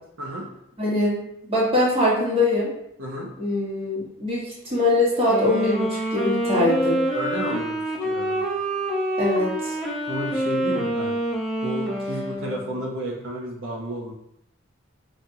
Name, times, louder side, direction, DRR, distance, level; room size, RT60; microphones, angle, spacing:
voice 1, 0.8-1.2 1.5-2.7 3.4-7.0 9.2-9.8, left 2 dB, 30° right, -6 dB, 1.4 m, -22 dB
voice 2, 3.0-3.3 7.1-8.4 10.1-11.2 11.6-14.1, right 1 dB, 70° right, -3 dB, 0.8 m, -31 dB
Wind instrument woodwind instrument, 5.2-12.9, right 1 dB, ahead, 0.8 m, -27 dB
5.6 x 3.3 x 2.7 m, 0.75 s
head